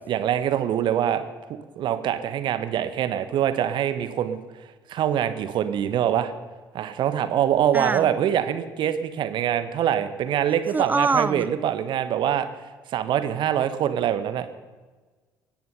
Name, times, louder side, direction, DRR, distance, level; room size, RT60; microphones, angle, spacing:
voice 1, 0.1-1.2 1.8-4.4 4.9-6.3 6.7-12.5 12.9-14.5, right 10 dB, 50° right, 10 dB, 1.4 m, -24 dB
voice 2, 7.7-8.1 10.7-11.5, right 3 dB, 15° right, 15 dB, 0.9 m, -24 dB
24.5 x 10.0 x 5.6 m, 1.3 s
figure-of-eight pair, 55°, 10 cm